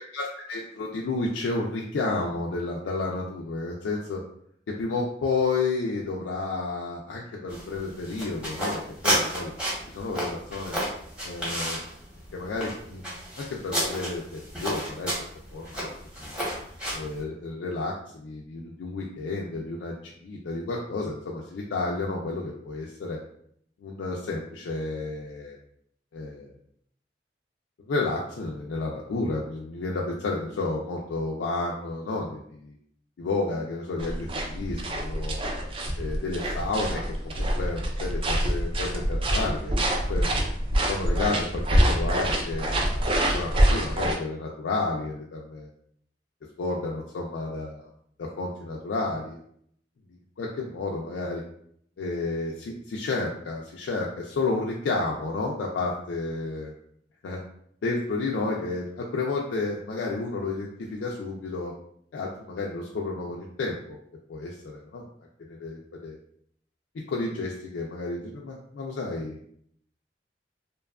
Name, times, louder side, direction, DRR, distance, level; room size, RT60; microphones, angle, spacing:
voice 1, 0.1-4.2 4.7-9.5 9.9-10.8 11.2-11.8 12.3-15.1 15.5-15.9 16.2-16.3 16.9-23.2 23.8-25.6 26.1-26.5 27.9-32.7 33.2-35.4 36.0-39.7 40.1-40.3 40.9-45.7 46.6-47.9 48.2-49.4 50.4-51.4 52.0-56.7 57.2-57.4 57.8-61.7 62.1-64.0 64.3-65.1 65.5-66.2 67.1-69.4, left 3 dB, 90° left, -2 dB, 0.4 m, -31 dB
sound 1, 7.5-17.2, equal, 5° right, 0.9 m, -32 dB
sound 2, 34.0-44.2, right 1 dB, 30° right, 0.3 m, -26 dB
2.7 x 2.3 x 2.2 m, 0.67 s
head